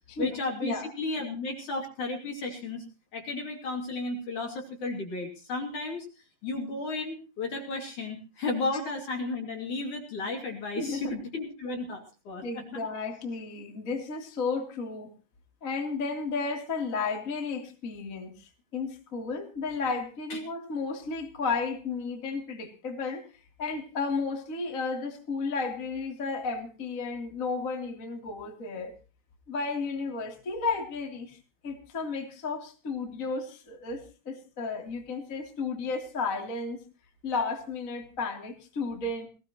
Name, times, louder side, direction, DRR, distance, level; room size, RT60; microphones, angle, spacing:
voice 1, 0.2-2.9 3.1-6.1 6.4-12.6 20.3-20.4, left 3 dB, 45° left, 2 dB, 3.5 m, -33 dB
voice 2, 10.7-11.1 12.4-15.1 15.6-23.3 23.6-28.9 29.5-31.4 31.6-36.8 37.2-39.3, left 4 dB, 20° left, 2 dB, 2.5 m, -33 dB
20.5 x 18.0 x 3.0 m, 0.34 s
omnidirectional pair, 5.9 m